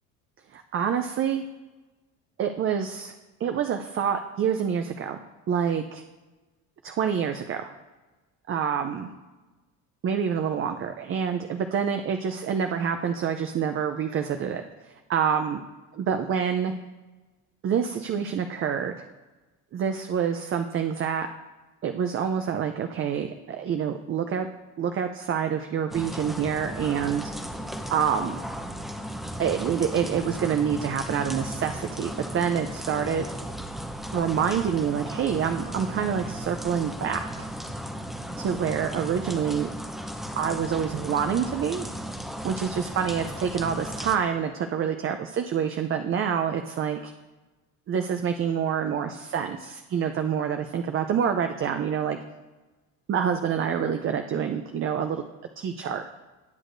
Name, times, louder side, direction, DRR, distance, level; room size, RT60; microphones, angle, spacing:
voice 1, 0.5-1.4 2.4-3.1 3.4-6.0 6.8-7.7 8.5-9.1 10.0-15.6 15.9-16.7 17.6-19.0 19.7-21.3 21.8-24.5 24.8-27.2 27.9-28.4 29.4-33.3 34.1-37.5 38.4-39.7 40.4-41.8 42.4-47.1 47.9-52.2 53.1-55.2 55.6-56.0, right 7 dB, 35° right, 6 dB, 0.5 m, -27 dB
sound 1, 25.9-44.2, equal, ahead, 0.7 m, -36 dB
18.0 x 6.4 x 2.6 m, 1.2 s
supercardioid pair, 100°, 35 cm